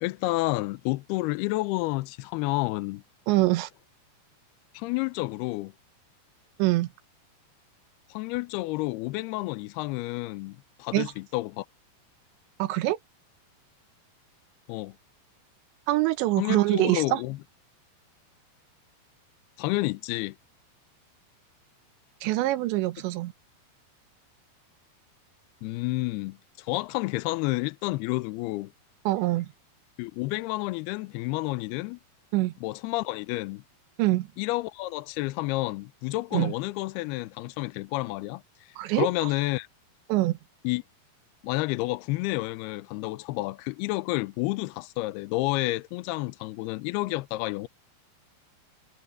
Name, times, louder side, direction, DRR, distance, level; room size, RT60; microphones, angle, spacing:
voice 1, 0.0-3.0 4.7-5.7 8.1-11.7 14.7-14.9 16.4-17.4 19.6-20.4 25.6-28.7 30.0-32.0 32.6-33.6 34.4-38.4 38.9-39.7 40.6-40.8 41.4-47.7, left 20 dB, 85° left, 2.4 m, -30 dB
voice 2, 3.3-3.7 6.6-6.9 10.9-11.1 12.6-13.0 15.9-17.2 22.2-23.3 29.1-29.5 32.3-32.5 34.0-34.3 36.3-36.5 38.8-39.1 40.1-40.4, right 17 dB, 85° right, 3.3 m, -24 dB
omnidirectional pair, 5.1 m